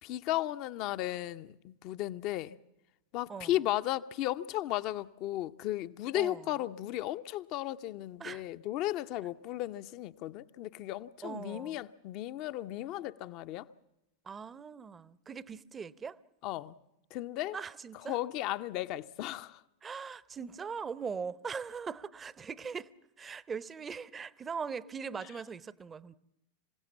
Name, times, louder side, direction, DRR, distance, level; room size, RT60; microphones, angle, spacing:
voice 1, 0.0-2.6 3.1-13.7 16.4-16.8 17.1-17.6 18.1-19.6, left 14 dB, 40° left, 0.7 m, -35 dB
voice 2, 6.1-6.6 8.2-8.5 11.2-11.8 14.2-16.2 17.5-18.2 19.8-26.2, right 6 dB, 20° right, 0.7 m, -41 dB
27.0 x 17.0 x 7.3 m
figure-of-eight pair, 90°, 0 cm